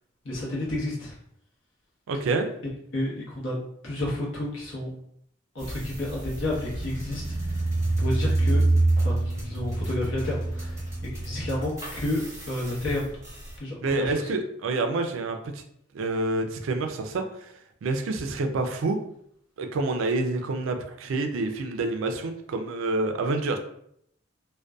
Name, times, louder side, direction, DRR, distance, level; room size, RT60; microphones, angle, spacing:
voice 1, 0.2-1.1 2.9-3.6 3.8-4.9 5.5-7.2 8.0-8.6 9.0-10.8 11.1-13.1 13.6-14.3, left 1 dB, 70° left, -4 dB, 0.9 m, -30 dB
voice 2, 2.1-2.5 13.8-15.4 15.9-17.5 17.8-19.0 19.6-23.6, right 3 dB, 80° right, 6 dB, 0.4 m, -27 dB
sound 1, 5.6-13.6, right 2 dB, 15° right, 0.7 m, -27 dB
2.5 x 2.2 x 2.2 m, 0.71 s
head